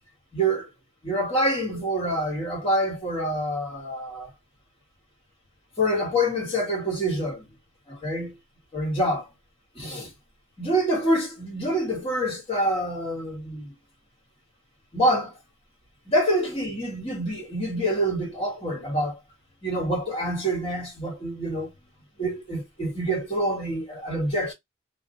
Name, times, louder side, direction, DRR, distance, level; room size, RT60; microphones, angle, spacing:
voice 1, 0.3-0.7 1.0-4.3 5.8-7.5 7.9-8.4 8.7-9.3 9.7-10.1 10.6-13.7 14.9-15.4 16.1-19.2 19.6-21.7 22.2-24.5, equal, 30° left, 1.6 m, -26 dB
3.0 x 2.0 x 3.7 m
head